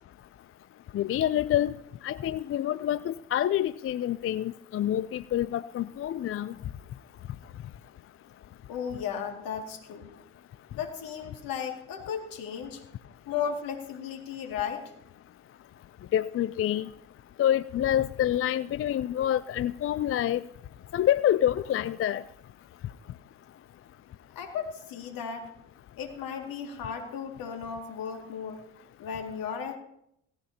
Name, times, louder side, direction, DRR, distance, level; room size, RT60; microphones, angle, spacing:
voice 1, 0.9-1.7 2.0-6.6 16.1-16.9 17.4-20.4 20.9-22.2, left 11 dB, 40° left, 16 dB, 0.5 m, -27 dB
voice 2, 8.7-10.1 10.7-12.8 13.3-14.9 24.4-25.5 26.0-28.7 29.0-29.8, left 7 dB, 65° left, 4 dB, 2.4 m, -35 dB
17.5 x 15.5 x 2.9 m, 0.76 s
hypercardioid pair, 50°, 36 cm